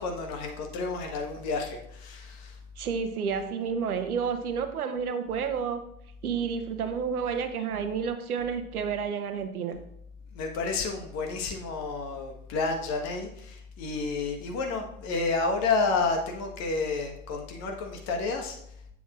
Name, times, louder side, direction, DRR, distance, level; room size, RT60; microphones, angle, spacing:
voice 1, 0.0-2.6 10.3-18.6, left 4 dB, 35° left, 3 dB, 1.4 m, -30 dB
voice 2, 2.8-5.8 6.2-9.8, right 6 dB, 75° right, 8 dB, 0.9 m, -30 dB
8.2 x 7.2 x 2.5 m, 0.76 s
figure-of-eight pair, 95°, 45 cm